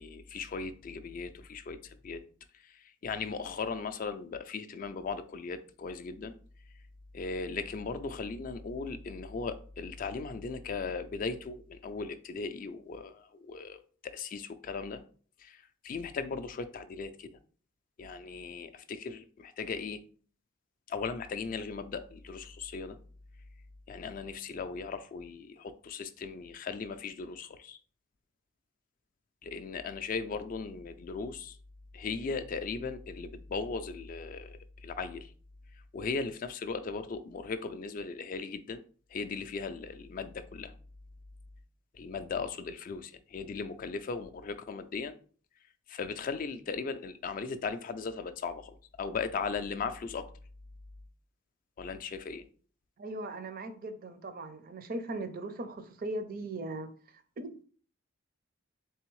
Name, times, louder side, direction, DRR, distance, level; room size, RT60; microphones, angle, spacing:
voice 1, 0.0-2.2 2.5-6.3 7.1-15.0 15.4-17.4 18.0-20.0 20.9-23.0 23.9-27.8 29.4-31.6 31.9-35.3 35.9-38.8 39.1-40.7 41.9-45.1 45.9-50.3 51.8-52.4, left 4 dB, 40° left, 0.3 m, -38 dB
voice 2, 53.0-57.5, right 2 dB, 45° right, 0.5 m, -39 dB
3.7 x 3.4 x 3.1 m
head